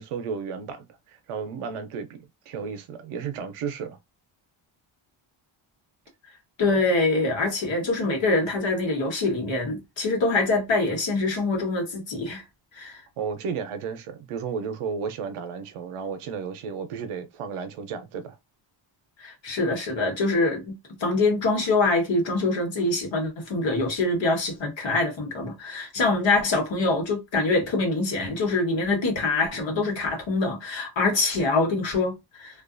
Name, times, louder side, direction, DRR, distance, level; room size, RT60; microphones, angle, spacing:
voice 1, 0.0-4.0 13.2-18.3, right 6 dB, 85° right, 0.7 m, -33 dB
voice 2, 6.6-12.4 12.7-13.0 19.2-32.6, left 3 dB, 60° left, 1.3 m, -24 dB
2.4 x 2.2 x 2.5 m
wide cardioid pair, 135°, 50 cm